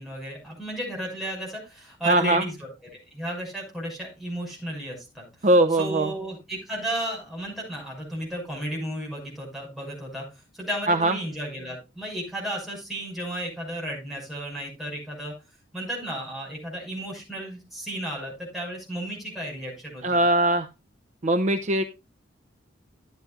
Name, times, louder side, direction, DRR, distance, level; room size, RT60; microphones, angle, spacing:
voice 1, 0.0-2.7 3.1-5.5 5.8-10.2 10.6-15.3 15.7-20.2, right 1 dB, ahead, -2 dB, 6.1 m, -33 dB
voice 2, 2.1-2.4 5.4-6.1 10.9-11.1 20.0-20.7 21.2-21.8, right 1 dB, 40° right, 9 dB, 0.6 m, -21 dB
13.5 x 9.3 x 2.5 m, 0.26 s
head